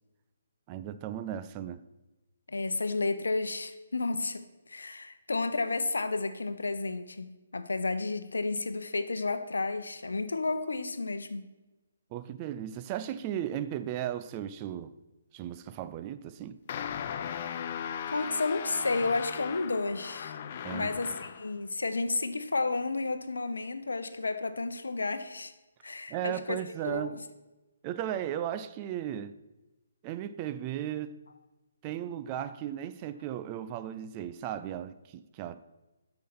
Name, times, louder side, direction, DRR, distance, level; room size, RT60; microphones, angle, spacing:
voice 1, 0.7-1.8 12.1-14.9 15.3-16.6 20.6-20.9 26.1-27.2 27.8-29.3 30.0-31.2 31.8-35.6, right 11 dB, 25° right, 0.4 m, -36 dB
voice 2, 2.5-11.5 18.1-20.3 20.7-25.5 25.8-26.6 26.8-27.2, left 3 dB, 70° left, 0.8 m, -32 dB
sound 1, 16.7-21.5, left 8 dB, 40° left, 0.5 m, -37 dB
8.3 x 5.8 x 5.9 m
figure-of-eight pair, 135°, 0 cm